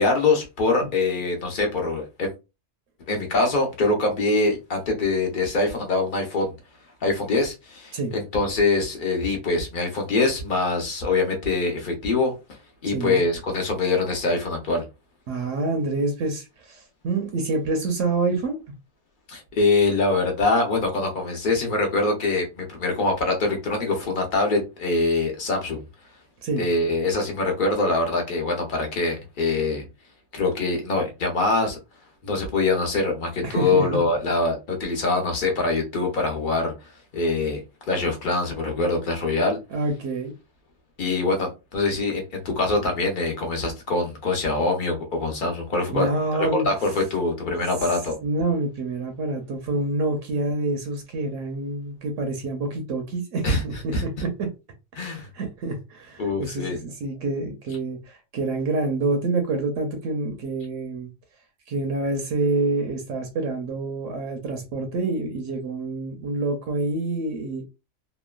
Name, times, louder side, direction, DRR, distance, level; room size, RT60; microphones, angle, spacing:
voice 1, 0.0-2.3 3.1-6.5 7.0-12.3 12.8-14.8 19.3-25.8 26.6-29.8 30.3-31.8 32.2-36.7 37.1-37.6 37.9-39.6 41.0-46.1 46.4-48.2 53.4-53.6 53.9-54.0 54.9-55.3 56.2-56.8, left 3 dB, 45° left, 0.8 m, -24 dB
voice 2, 12.8-13.2 15.3-18.6 26.4-26.6 33.4-33.9 39.7-40.3 45.9-46.7 48.2-54.5 55.3-61.1 61.7-67.6, right 2 dB, 80° right, 1.0 m, -27 dB
2.9 x 2.1 x 2.3 m
omnidirectional pair, 1.3 m